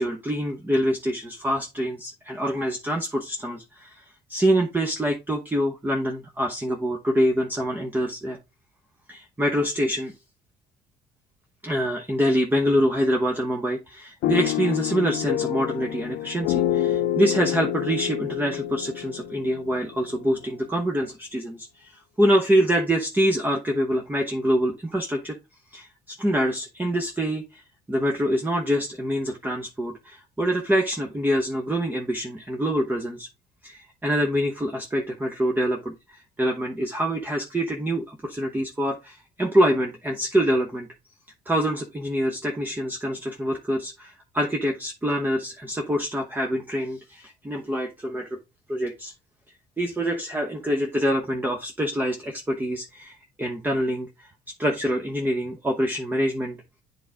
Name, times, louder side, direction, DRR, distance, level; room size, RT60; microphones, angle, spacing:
voice 1, 0.0-8.4 9.1-10.1 11.6-25.4 25.7-27.6 27.9-33.3 33.6-40.9 41.5-48.4 48.7-49.1 49.8-54.3 54.6-56.6, equal, 10° right, 3 dB, 0.9 m, -25 dB
sound 1, 14.2-20.3, left 12 dB, 85° left, 0.5 m, -27 dB
8.3 x 3.6 x 3.9 m, 0.25 s
cardioid pair, 110°, 17 cm